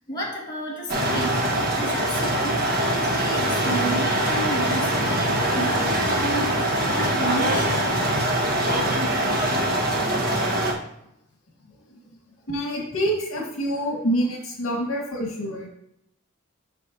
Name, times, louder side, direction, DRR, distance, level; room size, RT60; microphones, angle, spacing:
voice 1, 0.0-7.9 11.9-12.2, right 2 dB, 20° left, -5 dB, 1.9 m, -33 dB
sound 1, 0.9-10.7, right 1 dB, 45° right, 1.3 m, -23 dB
voice 2, 12.5-15.7, equal, 70° left, -1 dB, 1.9 m, -26 dB
8.3 x 6.1 x 2.9 m, 0.78 s
head